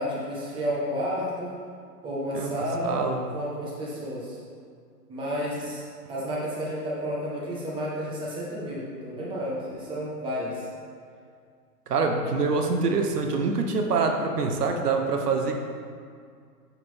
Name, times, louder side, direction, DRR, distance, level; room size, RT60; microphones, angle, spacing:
voice 1, 0.0-1.6 2.0-3.0 3.3-4.4 5.1-5.8 6.1-10.6, equal, 10° right, -6 dB, 1.2 m, -31 dB
voice 2, 2.8-3.2 11.9-15.6, right 4 dB, 70° right, 4 dB, 1.1 m, -25 dB
7.7 x 7.1 x 3.6 m, 2.2 s
hypercardioid pair, 150°, 48 cm